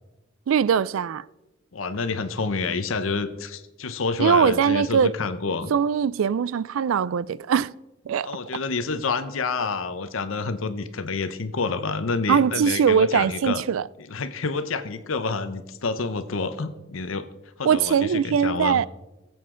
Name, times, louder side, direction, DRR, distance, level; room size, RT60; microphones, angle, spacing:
voice 1, 0.5-1.2 4.2-5.1 5.7-7.7 8.1-8.3 12.3-13.8 17.7-18.9, right 7 dB, 75° right, 0.3 m, -21 dB
voice 2, 1.7-5.7 8.2-13.6 14.1-17.3 17.6-18.8, left 4 dB, 75° left, 0.7 m, -28 dB
20.5 x 8.0 x 3.8 m
head